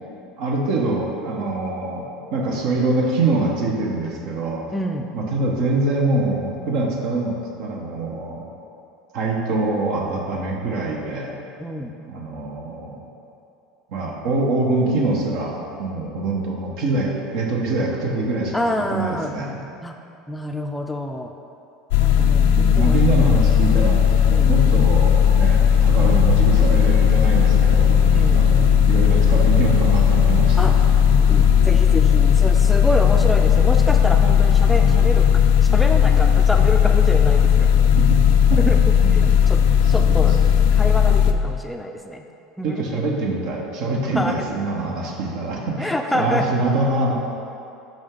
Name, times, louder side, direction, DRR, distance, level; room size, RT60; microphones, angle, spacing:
voice 1, 0.4-4.6 5.1-7.3 7.6-8.5 9.1-11.3 12.0-13.0 13.9-18.6 18.9-19.6 22.4-28.0 28.3-30.9 38.1-38.2 38.5-38.6 39.0-39.1 40.0-40.1 42.6-47.1, right 2 dB, 65° right, -1 dB, 1.0 m, -24 dB
voice 2, 4.7-5.1 11.6-11.9 18.5-19.3 19.8-19.9 20.3-21.3 22.0-23.0 24.3-24.5 26.0-26.2 28.1-28.5 30.6-30.7 31.2-37.7 38.7-38.8 39.1-39.6 39.9-40.4 40.7-42.2 42.6-43.0 44.1-44.3 45.8-46.4, left 1 dB, 5° left, 4 dB, 0.4 m, -27 dB
sound 1, 21.9-41.3, left 8 dB, 75° left, 0.3 m, -16 dB
sound 2, 23.6-35.1, right 6 dB, 90° right, 0.3 m, -33 dB
5.7 x 5.2 x 3.7 m, 2.7 s
hypercardioid pair, 90°, 0 cm